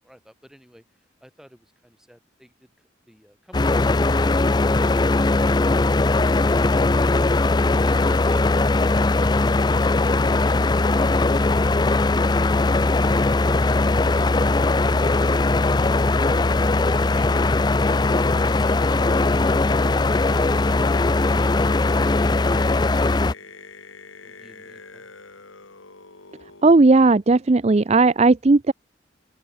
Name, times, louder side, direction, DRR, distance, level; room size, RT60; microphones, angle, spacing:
voice 1, 0.0-5.3 24.2-25.1, equal, ahead, 6.8 m, -51 dB
sound 1, 3.5-23.3, left 2 dB, 20° left, 0.4 m, -19 dB
sound 2, 16.1-26.7, left 4 dB, 80° left, 3.2 m, -44 dB
voice 2, 26.6-28.7, right 3 dB, 30° right, 0.5 m, -15 dB
open air
head